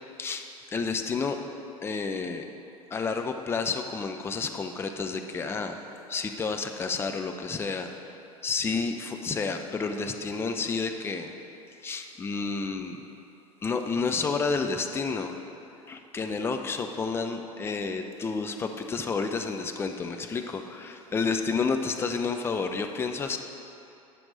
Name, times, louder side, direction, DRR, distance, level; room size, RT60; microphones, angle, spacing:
voice 1, 0.7-1.4 1.8-2.5 2.9-5.8 6.1-7.9 8.4-11.3 11.8-13.0 13.6-15.3 15.9-23.4, left 4 dB, 15° left, 6 dB, 0.5 m, -30 dB
9.8 x 6.0 x 3.9 m, 2.8 s
figure-of-eight pair, 80°, 18 cm